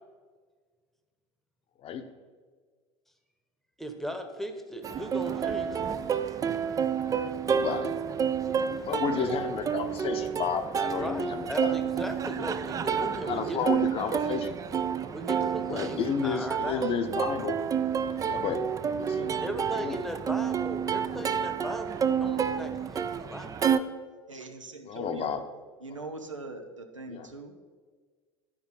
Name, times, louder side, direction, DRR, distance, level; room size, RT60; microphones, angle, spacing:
voice 1, 3.8-5.9 9.2-9.4 10.8-13.9 15.1-16.9 19.4-23.5, equal, ahead, 6 dB, 1.0 m, -37 dB
Plucked string instrument, 4.8-23.8, right 7 dB, 20° right, 0.4 m, -29 dB
voice 2, 7.4-8.0 8.8-11.7 12.3-12.5 13.2-14.6 15.7-17.6 18.2-18.6 19.0-19.3 19.7-20.0 24.9-25.4 25.9-26.0 27.1-27.3, left 6 dB, 35° left, 8 dB, 0.8 m, -32 dB
voice 3, 24.3-25.3 25.8-27.6, right 3 dB, 90° right, 5 dB, 0.8 m, -42 dB
11.5 x 4.7 x 5.4 m, 1.5 s
figure-of-eight pair, 75°, 16 cm